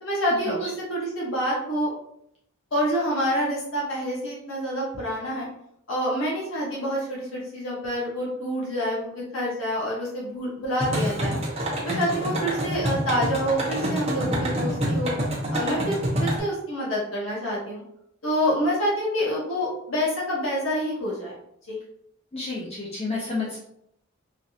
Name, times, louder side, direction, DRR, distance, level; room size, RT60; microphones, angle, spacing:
voice 1, 0.0-1.9 2.7-5.5 5.9-11.4 11.8-15.1 15.5-17.8 18.2-21.3 21.7-21.8, equal, 75° left, -5 dB, 1.1 m, -27 dB
sound 1, 10.8-16.4, right 1 dB, 30° right, 0.8 m, -27 dB
voice 2, 22.3-23.6, left 3 dB, 30° left, -6 dB, 0.6 m, -30 dB
3.2 x 2.6 x 2.7 m, 0.73 s
head